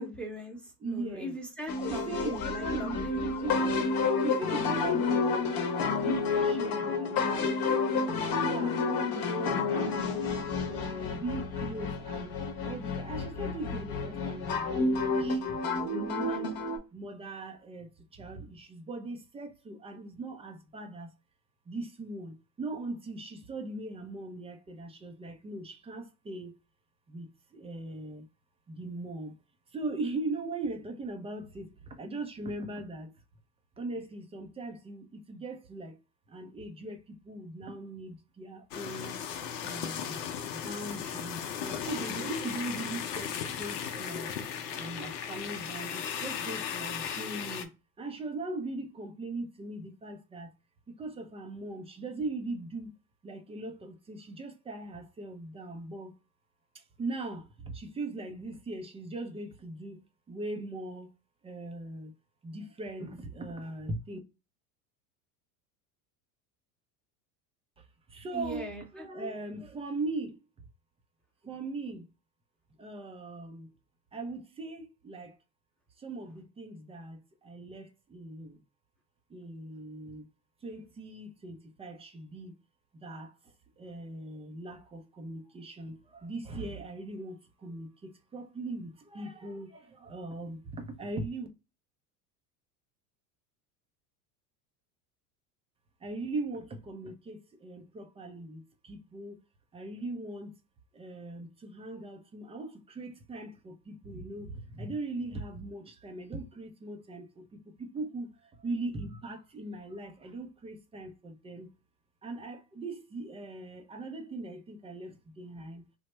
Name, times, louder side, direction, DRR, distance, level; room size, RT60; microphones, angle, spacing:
voice 1, 0.0-3.3 68.3-69.1, right 1 dB, ahead, 0.7 m, -40 dB
voice 2, 0.8-1.4 1.9-3.8 4.2-7.5 7.9-10.1 10.7-12.3 12.6-16.6 16.9-21.1 21.7-26.6 27.1-28.2 28.7-29.3 29.7-33.1 33.8-35.9 36.3-39.2 39.6-40.2 40.5-44.3 44.7-47.7 48.0-50.5 50.9-52.9 53.2-56.1 56.7-60.0 60.3-61.1 61.4-62.1 62.4-64.2 67.8-70.4 71.4-72.1 72.8-73.7 74.1-75.4 76.0-78.6 79.3-80.3 80.6-82.5 82.9-83.3 83.8-91.5 96.0-99.4 99.7-100.5 100.9-111.7 112.2-115.8, right 2 dB, 15° right, 0.3 m, -40 dB
sound 1, 1.7-16.8, left 4 dB, 45° left, 0.8 m, -30 dB
sound 2, 38.7-47.7, left 8 dB, 85° left, 0.6 m, -36 dB
3.2 x 2.1 x 3.0 m
hypercardioid pair, 90°, 48 cm